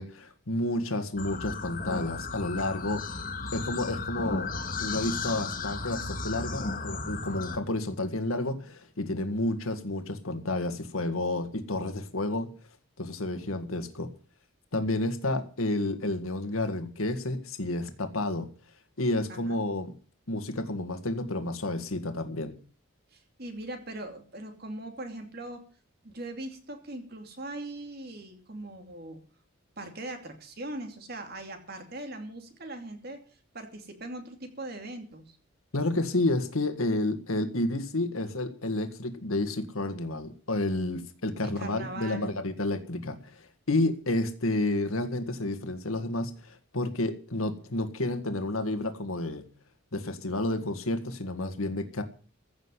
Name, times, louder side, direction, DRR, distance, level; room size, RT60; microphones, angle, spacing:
voice 1, 0.0-3.0 3.5-4.5 4.8-12.5 13.0-14.1 14.7-18.5 19.0-19.9 20.3-22.5 35.7-49.4 49.9-52.0, left 2 dB, 85° left, 8 dB, 1.8 m, -30 dB
sound 1, 1.2-7.6, left 3 dB, 40° left, 1.7 m, -34 dB
voice 2, 19.3-19.6 23.1-25.6 26.0-29.2 29.8-33.2 33.5-35.4 41.6-42.3, right 1 dB, 45° right, 5 dB, 2.7 m, -40 dB
15.5 x 6.5 x 9.7 m, 0.39 s
head